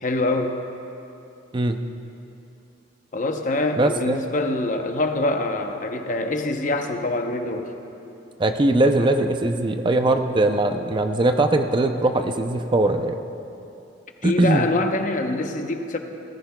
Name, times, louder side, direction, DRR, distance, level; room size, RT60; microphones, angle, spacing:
voice 1, 0.0-0.6 3.1-7.7 14.2-16.0, left 2 dB, 45° left, 5 dB, 0.7 m, -24 dB
voice 2, 3.8-4.2 8.4-13.2 14.2-14.7, right 2 dB, 25° right, 7 dB, 0.4 m, -20 dB
19.0 x 14.0 x 2.2 m, 2.8 s
head